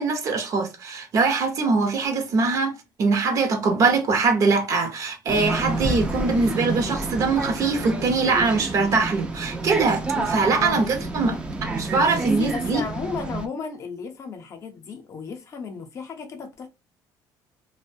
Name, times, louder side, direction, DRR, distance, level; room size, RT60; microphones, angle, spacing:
voice 1, 0.0-11.4 11.7-12.8, right 4 dB, 45° right, 0.7 m, -22 dB
sound 1, 5.3-13.5, right 3 dB, 15° right, 0.4 m, -29 dB
voice 2, 10.1-11.4 12.2-16.7, left 5 dB, 40° left, 0.6 m, -34 dB
2.6 x 2.1 x 2.6 m
cardioid pair, 135°, 8 cm